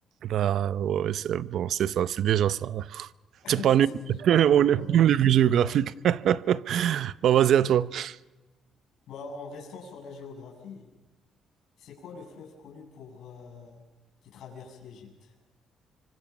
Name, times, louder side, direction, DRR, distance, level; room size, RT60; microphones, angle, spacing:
voice 1, 0.2-3.1 3.5-3.9 4.2-8.2, right 10 dB, 60° right, 0.7 m, -23 dB
voice 2, 3.4-4.9 9.1-10.9 11.8-13.8 14.2-15.3, left 5 dB, 65° left, 7.7 m, -44 dB
26.0 x 25.0 x 6.0 m
cardioid pair, 155°, 0 cm